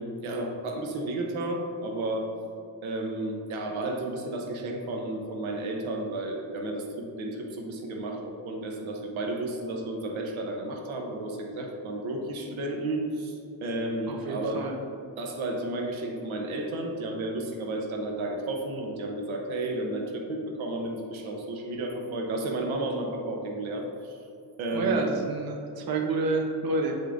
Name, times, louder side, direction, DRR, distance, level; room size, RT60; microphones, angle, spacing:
voice 1, 0.0-2.3 2.8-14.7 15.2-24.2 24.6-25.0, right 2 dB, 85° right, 2 dB, 0.9 m, -32 dB
voice 2, 14.1-14.8 24.7-26.9, right 3 dB, 50° right, 2 dB, 0.8 m, -29 dB
7.3 x 5.2 x 2.5 m, 2.6 s
cardioid pair, 95°, 47 cm